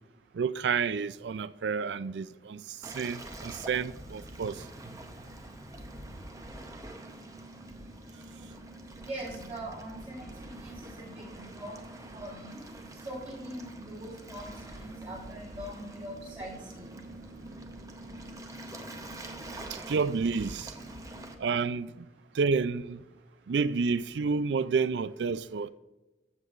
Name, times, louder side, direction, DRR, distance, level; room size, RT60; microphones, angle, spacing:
voice 1, 0.3-4.6 19.7-20.7 21.4-21.9 22.3-23.0 23.5-25.7, right 5 dB, 80° right, 0.4 m, -30 dB
Waves surf, 2.8-21.3, right 1 dB, 20° right, 0.8 m, -45 dB
voice 2, 9.0-11.7 12.1-12.6 13.0-14.5 14.7-17.0, right 1 dB, 40° right, 3.3 m, -42 dB
14.5 x 7.4 x 2.5 m
head